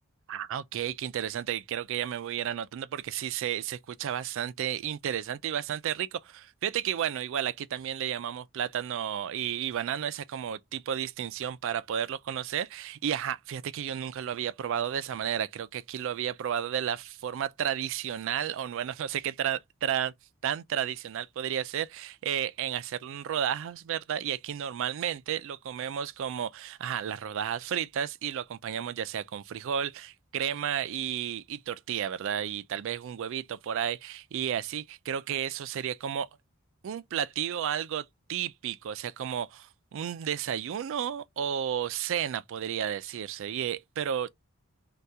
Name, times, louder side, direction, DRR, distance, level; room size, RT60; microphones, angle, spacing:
voice 1, 0.3-20.1 20.4-36.3 36.8-44.3, right 9 dB, 60° right, 0.3 m, -32 dB
2.7 x 2.3 x 3.3 m
head